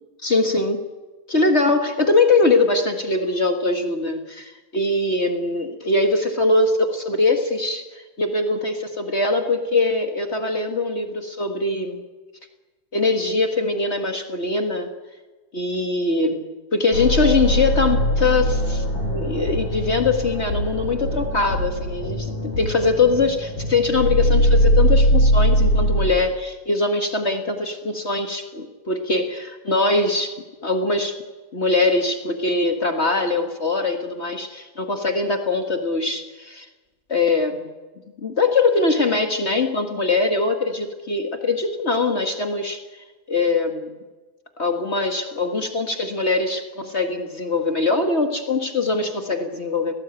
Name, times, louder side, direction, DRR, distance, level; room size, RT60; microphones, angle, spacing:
voice 1, 0.2-0.8 1.3-12.0 12.9-14.9 15.5-30.3 30.6-31.1 31.5-36.7 37.1-37.7 38.2-42.8 43.3-43.9 44.6-49.9, left 3 dB, 50° left, 5 dB, 0.8 m, -22 dB
sound 1, 16.9-26.1, equal, 75° left, 7.5 m, -21 dB
29.5 x 19.0 x 9.1 m, 1.2 s
omnidirectional pair, 4.2 m